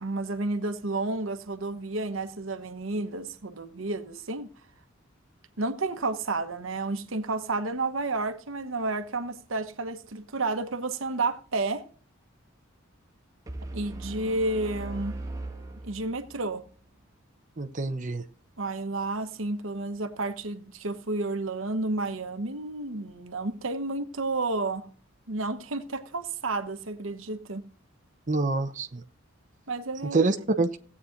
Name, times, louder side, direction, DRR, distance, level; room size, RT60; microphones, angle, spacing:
voice 1, 0.0-4.5 5.6-11.8 13.7-15.2 15.8-16.6 18.6-24.9 25.3-27.6 29.7-30.2, right 2 dB, 80° right, 1.1 m, -31 dB
sound 1, 13.5-16.5, right 2 dB, 20° right, 1.6 m, -39 dB
voice 2, 17.6-18.2 28.3-29.0 30.1-30.8, right 3 dB, 40° right, 0.8 m, -26 dB
17.0 x 8.5 x 2.5 m
head